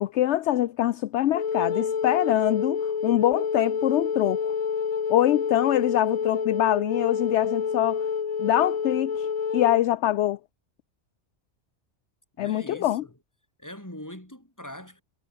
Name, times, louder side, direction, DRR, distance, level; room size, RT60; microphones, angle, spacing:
voice 1, 0.0-4.5 5.1-8.0 8.4-9.3 9.5-10.4 12.4-13.0, left 13 dB, 75° left, 0.9 m, -24 dB
Wind instrument woodwind instrument, 1.3-9.8, left 6 dB, 40° left, 0.6 m, -28 dB
voice 2, 12.4-13.1 13.6-15.0, left 1 dB, 15° left, 5.2 m, -42 dB
omnidirectional pair, 1.2 m